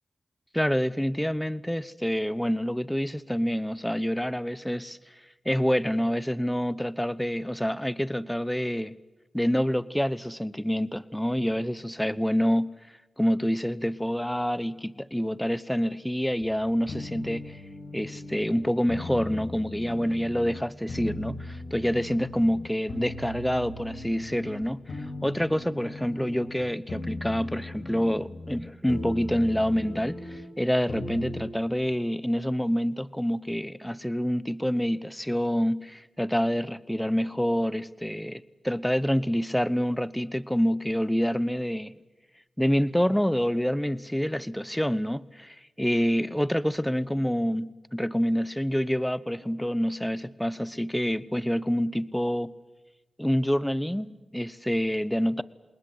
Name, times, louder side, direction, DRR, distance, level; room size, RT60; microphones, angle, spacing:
voice 1, 0.5-5.0 5.4-9.0 9.3-12.7 13.2-17.6 17.9-41.9 42.6-52.5 53.2-54.1 54.3-55.4, equal, 5° left, 18 dB, 1.0 m, -27 dB
sound 1, 16.9-20.6 20.9-22.6 22.9-26.6 26.9-28.6 28.9-30.4 30.9-31.5, left 2 dB, 75° left, 6.2 m, -39 dB
28.0 x 20.5 x 8.1 m, 1.1 s
cardioid pair, 55°, 0 cm